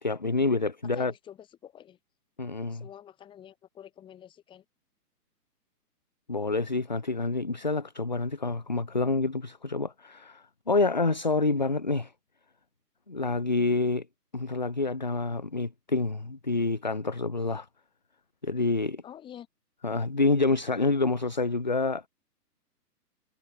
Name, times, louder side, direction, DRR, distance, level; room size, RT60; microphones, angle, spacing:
voice 1, 0.0-1.1 2.4-2.9 6.3-12.1 13.1-14.1 14.3-17.7 18.4-19.0 19.8-22.1, left 3 dB, 30° left, 0.5 m, -27 dB
voice 2, 0.9-2.0 2.7-4.6 19.0-19.5, left 10 dB, 10° left, 7.2 m, -48 dB
hypercardioid pair, 170°, 48 cm